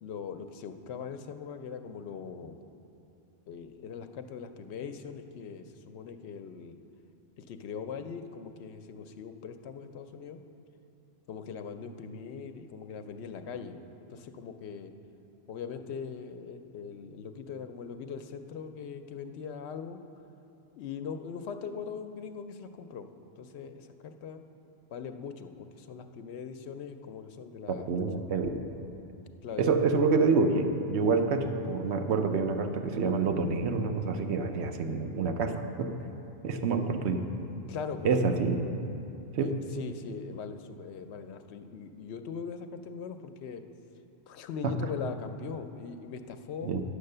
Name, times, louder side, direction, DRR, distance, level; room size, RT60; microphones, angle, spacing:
voice 1, 0.0-2.6 3.5-6.8 7.4-10.4 11.3-14.9 15.5-20.0 20.8-23.1 23.4-24.4 24.9-28.0 29.4-29.8 37.7-38.2 39.4-43.6 44.3-46.7, left 6 dB, 80° left, 8 dB, 0.9 m, -41 dB
voice 2, 27.7-28.6 29.6-35.9 36.4-37.3 38.0-38.6 39.4-39.5 44.6-44.7 46.6-46.8, right 4 dB, 90° right, 6 dB, 1.0 m, -27 dB
9.5 x 6.8 x 6.6 m, 2.8 s
omnidirectional pair, 1.1 m